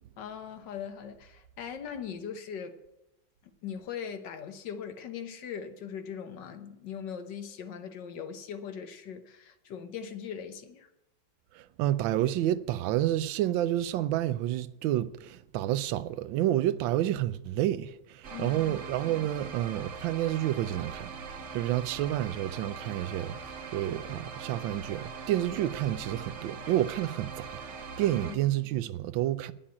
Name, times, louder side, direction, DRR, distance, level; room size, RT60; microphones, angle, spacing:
voice 1, 0.2-2.8 3.6-10.9 18.3-18.8 28.1-28.4, left 7 dB, 70° left, 1.5 m, -40 dB
voice 2, 11.5-27.6 28.0-29.5, right 13 dB, 85° right, 1.3 m, -29 dB
sound 1, 18.2-28.4, right 5 dB, 50° right, 1.0 m, -42 dB
9.9 x 7.2 x 8.6 m
omnidirectional pair, 2.0 m